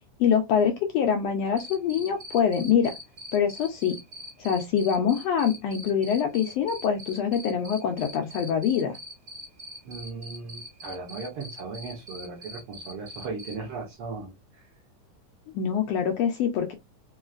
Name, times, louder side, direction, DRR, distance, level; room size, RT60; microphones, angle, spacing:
voice 1, 0.2-2.9 3.3-3.9 4.4-9.0 15.5-16.7, left 7 dB, 80° left, 1.5 m, -24 dB
Cricket, 1.6-13.5, equal, 35° right, 1.3 m, -42 dB
voice 2, 9.8-14.6, right 4 dB, 60° right, 1.6 m, -37 dB
4.8 x 3.0 x 2.4 m
omnidirectional pair, 3.4 m